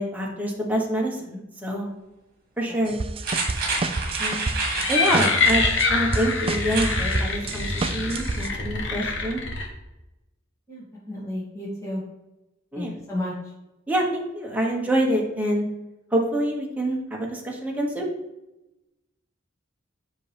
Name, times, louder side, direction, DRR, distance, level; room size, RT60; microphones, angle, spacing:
voice 1, 0.0-1.9 2.6-3.0 4.2-4.4 4.9-9.4 12.7-12.9 13.9-15.6 16.1-18.1, right 1 dB, 10° right, -2 dB, 1.2 m, -26 dB
sound 1, 2.9-8.5, right 3 dB, 30° right, 0.4 m, -30 dB
sound 2, 3.2-5.6 6.6-7.0 7.4-7.5, right 3 dB, 50° right, 1.6 m, -28 dB
sound 3, 4.5-9.6, left 3 dB, 65° left, 1.3 m, -25 dB
voice 2, 10.7-12.0 12.7-13.3, left 1 dB, 15° left, -7 dB, 2.3 m, -32 dB
7.5 x 5.5 x 3.4 m, 0.96 s
head